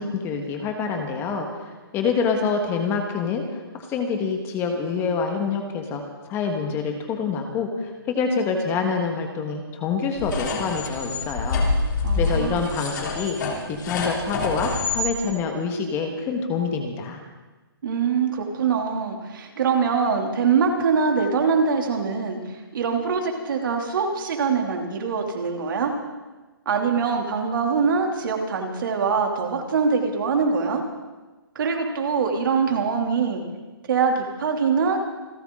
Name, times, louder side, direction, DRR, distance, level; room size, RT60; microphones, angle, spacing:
voice 1, 0.0-1.6 1.9-3.6 3.9-6.0 6.3-11.6 12.2-13.4 13.7-17.2, left 5 dB, 20° left, 4 dB, 1.5 m, -26 dB
sound 1, 10.2-15.1, left 3 dB, 45° left, 3.5 m, -26 dB
voice 2, 12.0-12.6 17.8-25.9 26.6-30.8 31.5-33.4 33.9-35.0, right 5 dB, 55° right, 2 dB, 2.9 m, -23 dB
27.5 x 12.5 x 3.9 m, 1.2 s
hypercardioid pair, 155°, 13 cm